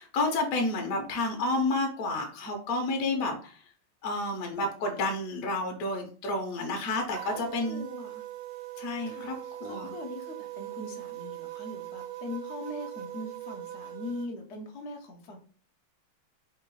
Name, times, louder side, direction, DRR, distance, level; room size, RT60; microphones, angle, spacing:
voice 1, 0.0-3.6 4.0-7.9 8.8-9.4 9.6-9.9, left 2 dB, 60° left, 2 dB, 1.0 m, -30 dB
sound 1, 7.1-14.3, right 14 dB, 75° right, 1.0 m, -41 dB
voice 2, 7.7-8.3 9.1-15.4, left 2 dB, 80° left, 2 dB, 0.6 m, -41 dB
3.7 x 2.5 x 4.5 m, 0.40 s
omnidirectional pair, 2.3 m